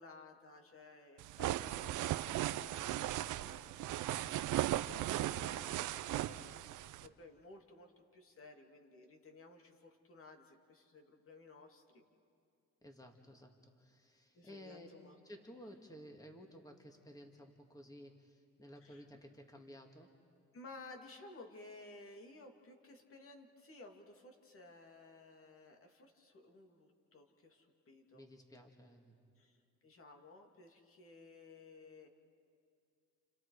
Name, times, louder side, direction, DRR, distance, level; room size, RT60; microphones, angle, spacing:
voice 1, 0.0-12.0 14.3-15.2 18.8-19.1 20.5-28.3 29.4-29.6 29.8-32.1, left 3 dB, 45° left, 3 dB, 2.7 m, -57 dB
sound 1, 1.2-7.1, right 14 dB, 85° right, 0.7 m, -37 dB
voice 2, 12.8-14.9 15.2-20.1 28.1-29.2, equal, 10° left, 3 dB, 2.2 m, -55 dB
30.0 x 29.5 x 4.9 m, 2.3 s
cardioid pair, 90°, 30 cm